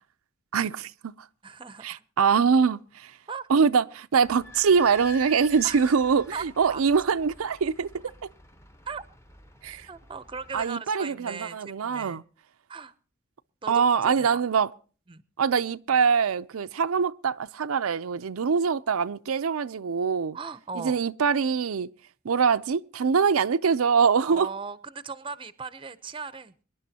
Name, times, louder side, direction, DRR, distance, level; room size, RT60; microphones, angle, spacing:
voice 1, 0.5-1.1 1.8-3.1 3.5-7.9 9.6-9.9 10.5-12.2 13.7-14.7 15.4-20.4 20.8-21.9 22.2-24.5, right 6 dB, 85° right, 0.5 m, -23 dB
voice 2, 1.4-2.0 3.3-3.5 5.6-6.0 6.3-6.5 6.7-6.8 8.9-9.0 9.9-12.2 12.7-12.9 13.6-14.3 15.1-15.2 20.3-21.0 24.2-26.5, right 5 dB, 25° right, 0.6 m, -38 dB
Idling / Squeak, 4.2-10.6, left 2 dB, 15° left, 0.8 m, -47 dB
25.0 x 11.0 x 2.8 m
head